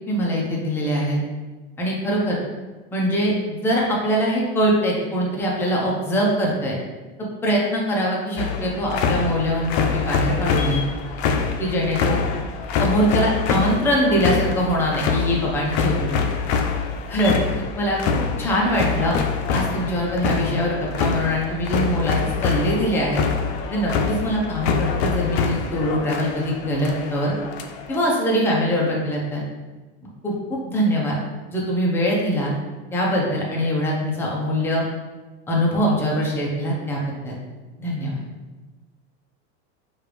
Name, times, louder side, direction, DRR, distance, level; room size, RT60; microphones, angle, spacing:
voice 1, 0.1-1.2 1.8-2.4 2.9-6.8 7.4-10.8 11.6-12.2 12.8-16.3 17.1-18.0 18.4-19.2 19.5-23.2 23.7-27.3 27.9-29.4 30.2-31.2 31.5-32.5 32.9-34.8 35.5-37.0 37.2-37.4 37.8-38.2, equal, 5° left, -3 dB, 0.6 m, -22 dB
sound 1, 8.4-28.0, left 5 dB, 75° left, 0.5 m, -25 dB
3.2 x 2.5 x 3.1 m, 1.2 s
supercardioid pair, 120°, 32 cm